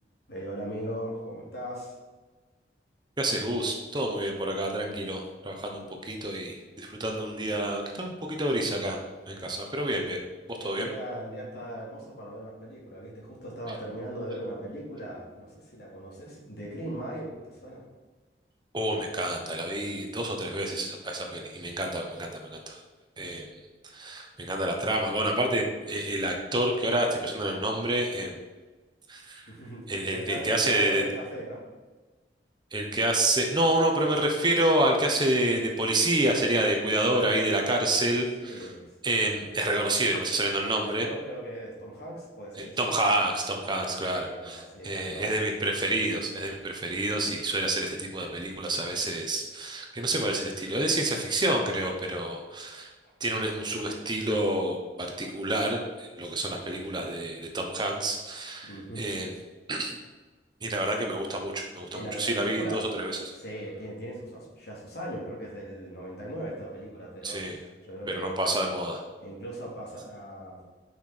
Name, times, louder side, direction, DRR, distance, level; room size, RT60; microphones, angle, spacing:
voice 1, 0.3-1.9 10.6-17.8 29.5-31.6 37.5-37.9 38.4-38.9 40.6-43.0 43.7-45.4 53.0-53.1 53.9-54.0 58.6-59.0 61.7-62.9 63.4-68.4 69.2-70.7, right 1 dB, 60° left, -3 dB, 2.8 m, -39 dB
voice 2, 3.2-9.0 9.3-10.2 10.5-10.9 18.7-22.8 23.2-23.5 23.9-28.4 29.1-29.5 29.9-31.0 32.7-38.7 39.0-41.1 42.6-52.9 53.2-59.3 59.7-60.0 60.6-63.2 67.2-67.6 68.1-69.0, right 1 dB, 25° right, 2 dB, 1.1 m, -28 dB
9.2 x 6.1 x 4.4 m, 1.3 s
head